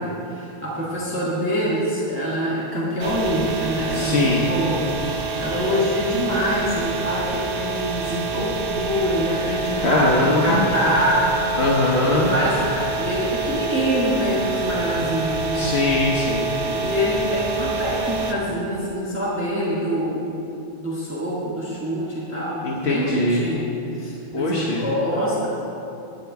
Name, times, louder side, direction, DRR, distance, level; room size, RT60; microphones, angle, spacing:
voice 1, 0.0-11.5 12.0-15.7 16.6-20.3 20.8-23.7 24.0-25.5, equal, 10° right, -8 dB, 1.5 m, -25 dB
sound 1, 3.0-18.3, right 4 dB, 55° right, 1.0 m, -27 dB
voice 2, 3.9-4.5 9.8-10.6 11.6-12.3 15.5-16.5 22.6-23.5 24.3-24.8, left 2 dB, 70° left, -3 dB, 1.2 m, -21 dB
11.0 x 4.6 x 8.2 m, 2.8 s
omnidirectional pair, 1.1 m